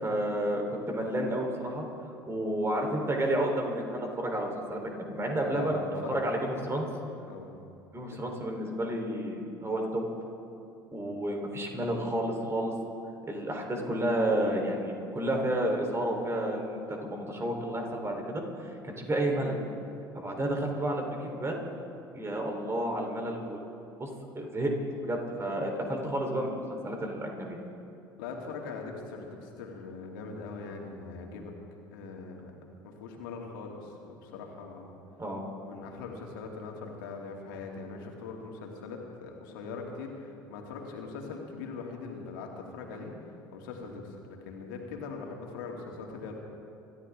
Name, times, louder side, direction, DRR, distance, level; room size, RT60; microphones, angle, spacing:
voice 1, 0.0-1.8 2.3-5.8 6.1-6.8 7.9-10.1 10.9-12.7 13.3-16.8 17.1-18.4 18.8-19.6 20.2-21.6 22.1-23.6 24.0-24.1 24.3-24.7 25.0-27.6 35.2-35.5, right 1 dB, 25° right, 2 dB, 3.8 m, -31 dB
voice 2, 5.3-6.3 7.3-7.5 28.2-31.5 31.9-32.5 32.8-34.9 35.6-44.2 44.4-46.4, left 4 dB, 70° left, 0 dB, 2.6 m, -41 dB
27.0 x 14.0 x 3.7 m, 2.6 s
figure-of-eight pair, 65°, 11 cm